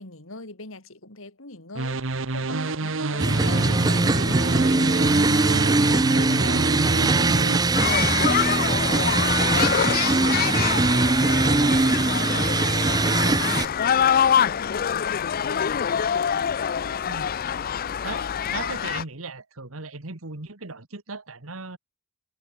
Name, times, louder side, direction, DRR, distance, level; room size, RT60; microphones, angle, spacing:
voice 1, 0.0-5.0 5.3-12.9 13.2-15.9, left 2 dB, 70° left, 3.7 m, -42 dB
sound 1, 1.8-7.6, right 3 dB, 65° right, 1.3 m, -28 dB
sound 2, 3.2-13.7, right 3 dB, 20° right, 0.6 m, -21 dB
sound 3, 7.8-19.0, left 8 dB, 45° left, 0.5 m, -25 dB
voice 2, 18.0-21.8, right 3 dB, 80° right, 2.0 m, -37 dB
head